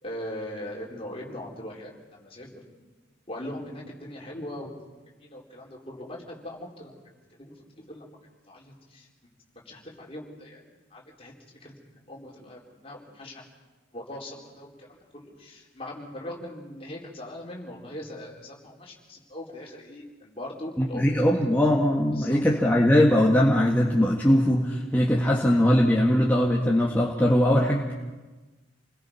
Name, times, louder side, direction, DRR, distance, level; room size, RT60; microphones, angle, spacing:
voice 1, 0.0-2.6 3.3-4.7 5.2-6.9 7.3-8.1 8.5-9.1 9.5-11.3 11.6-13.4 13.9-21.4 22.2-22.4, left 1 dB, 30° left, -2 dB, 4.4 m, -40 dB
voice 2, 20.8-27.9, left 1 dB, 10° left, -3 dB, 1.7 m, -21 dB
28.5 x 21.0 x 5.9 m, 1.2 s
head